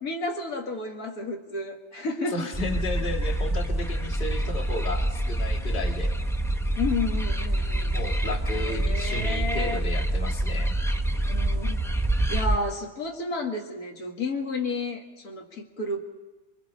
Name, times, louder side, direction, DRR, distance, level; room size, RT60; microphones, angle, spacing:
voice 1, 0.0-2.5 6.8-8.0 8.6-9.8 11.3-11.9 12.3-16.0, left 3 dB, 85° left, 1 dB, 2.3 m, -31 dB
voice 2, 2.3-6.1 7.9-10.8, left 2 dB, 35° left, 0 dB, 2.1 m, -33 dB
sound 1, 2.5-12.6, right 1 dB, 5° left, 0.6 m, -26 dB
29.0 x 22.0 x 4.2 m, 1.1 s
omnidirectional pair, 1.5 m